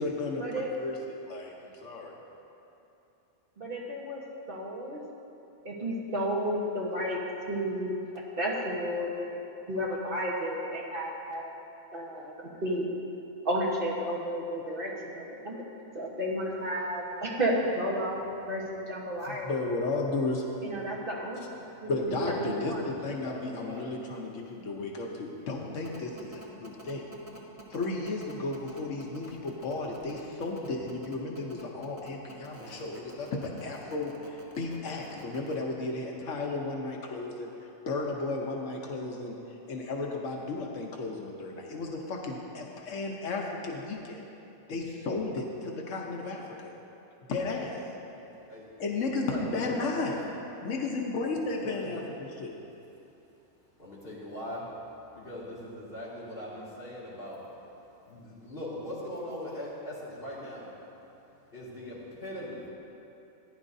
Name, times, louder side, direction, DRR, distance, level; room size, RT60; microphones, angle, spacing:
voice 1, 0.0-2.2 19.3-20.4 21.9-27.0 27.7-44.2 44.7-46.7 47.3-47.8 48.8-50.2 50.6-52.5, left 3 dB, 75° left, 0 dB, 1.2 m, -34 dB
voice 2, 3.6-4.2 4.5-5.0 5.6-7.2 7.5-8.0 8.4-11.5 11.9-12.3 12.6-12.9 13.4-15.5 15.9-18.2 18.4-19.7 20.6-21.5 21.8-22.8, equal, 45° right, -3 dB, 1.3 m, -32 dB
voice 3, 20.5-20.9 21.9-22.1 22.4-22.5 22.8-23.9 26.1-26.2 48.5-48.7 49.2-50.3 51.6-52.1 53.8-57.4 58.1-60.7 61.5-62.7, left 1 dB, 45° left, -8 dB, 2.6 m, -41 dB
sound 1, 25.8-35.5, right 2 dB, 30° right, 1.1 m, -49 dB
15.0 x 10.0 x 2.7 m, 2.9 s
omnidirectional pair, 1.3 m